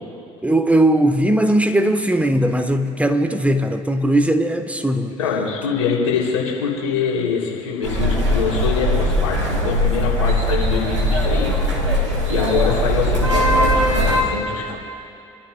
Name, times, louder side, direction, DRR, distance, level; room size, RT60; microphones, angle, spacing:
voice 1, 0.4-5.2 14.7-14.8, right 1 dB, 10° right, 7 dB, 1.1 m, -18 dB
voice 2, 5.2-11.6 12.3-14.8, left 6 dB, 85° left, -3 dB, 3.1 m, -24 dB
sound 1, 7.8-14.2, equal, 90° right, 2.3 m, -19 dB
28.0 x 13.0 x 2.3 m, 2.7 s
hypercardioid pair, 55°, 16 cm